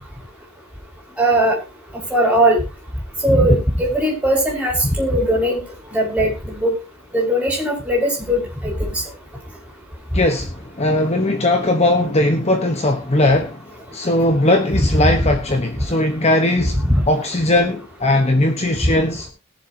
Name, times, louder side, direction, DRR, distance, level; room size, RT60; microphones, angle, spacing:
voice 1, 1.2-1.5 2.1-2.6 3.2-5.6 5.9-6.7 7.1-8.9 16.9-17.0, right 1 dB, 5° right, -3 dB, 5.7 m, -18 dB
voice 2, 10.1-13.6 13.9-19.3, left 1 dB, 30° left, 5 dB, 1.2 m, -18 dB
21.5 x 7.3 x 2.9 m, 0.30 s
head